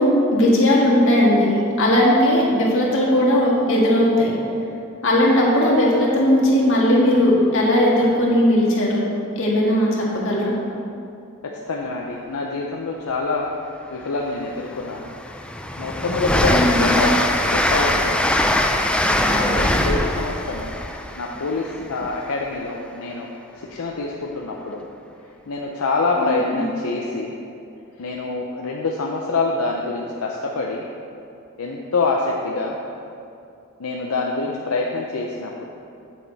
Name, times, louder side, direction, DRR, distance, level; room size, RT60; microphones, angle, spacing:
voice 1, 0.0-4.3 5.0-9.1 9.4-10.6 16.5-16.8 26.2-26.7, left 1 dB, 65° left, -4 dB, 1.8 m, -18 dB
voice 2, 11.7-13.5 13.9-15.1 15.8-18.3 19.2-20.8 21.1-23.3 23.5-24.9 25.5-27.3 28.0-30.8 31.6-32.8 33.8-35.6, left 3 dB, 85° left, -1 dB, 0.6 m, -26 dB
Train, 14.1-14.2 14.7-22.4, left 1 dB, 5° left, 0.3 m, -22 dB
8.3 x 7.4 x 4.1 m, 2.6 s
head